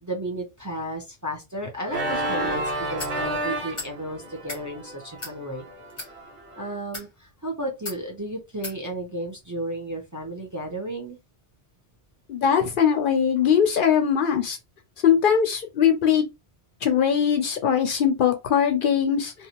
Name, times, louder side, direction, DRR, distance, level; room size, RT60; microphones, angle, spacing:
voice 1, 0.0-5.6 6.6-11.2, right 1 dB, 20° right, 0.5 m, -33 dB
Organ, 1.9-6.7, right 1 dB, 55° right, 1.0 m, -31 dB
sound 1, 3.0-3.2 3.7-3.9 4.4-4.6 5.2-5.4 5.9-6.1 6.8-7.1 7.9-8.0 8.6-8.8, left 2 dB, 30° left, 0.8 m, -35 dB
voice 2, 12.3-14.6 15.0-16.2 16.8-19.3, left 8 dB, 60° left, 0.6 m, -21 dB
2.7 x 2.3 x 2.8 m
omnidirectional pair, 1.1 m